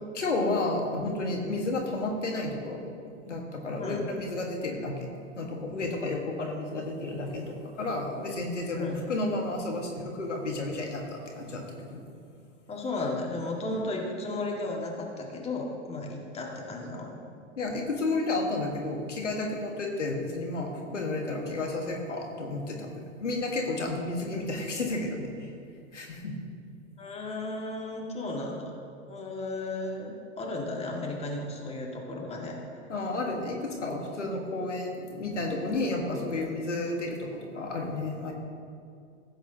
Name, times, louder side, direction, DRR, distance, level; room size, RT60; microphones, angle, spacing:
voice 1, 0.1-2.8 3.3-5.1 5.4-12.0 13.6-13.8 17.6-25.5 25.9-26.4 32.9-38.3, left 2 dB, 85° left, 1 dB, 1.6 m, -32 dB
voice 2, 12.7-17.2 27.0-28.7 29.1-32.6 36.9-37.0, left 2 dB, 15° left, -1 dB, 1.9 m, -34 dB
15.5 x 8.1 x 2.8 m, 2.4 s
hypercardioid pair, 100°, 35 cm